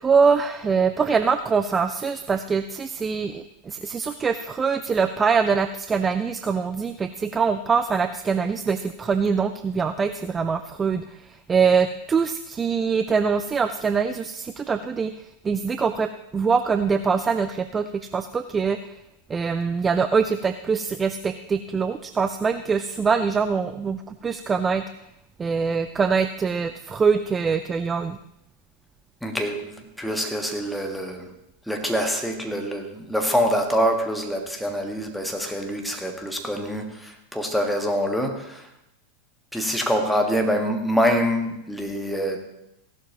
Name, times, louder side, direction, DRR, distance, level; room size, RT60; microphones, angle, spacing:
voice 1, 0.0-19.0 19.3-24.8 25.4-28.2, right 5 dB, 20° right, 11 dB, 0.4 m, -23 dB
voice 2, 29.2-31.3 31.7-38.7 39.5-42.4, equal, ahead, 3 dB, 1.5 m, -25 dB
15.5 x 11.5 x 2.9 m, 0.84 s
figure-of-eight pair, 90°, 0 cm